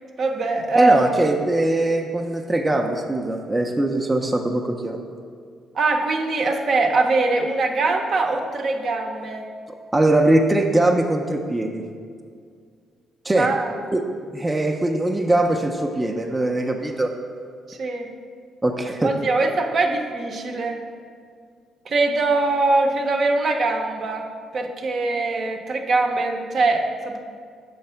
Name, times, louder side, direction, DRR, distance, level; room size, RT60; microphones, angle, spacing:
voice 1, 0.2-1.1 5.7-9.4 13.4-13.7 17.7-18.1 19.0-20.8 21.9-24.3 24.5-27.2, right 3 dB, 55° right, 3 dB, 0.6 m, -22 dB
voice 2, 0.7-5.0 9.9-11.9 13.2-13.5 13.9-17.1 18.6-19.1, right 1 dB, 15° right, 2 dB, 0.5 m, -21 dB
6.8 x 3.2 x 5.6 m, 2.1 s
cardioid pair, 90°, 0 cm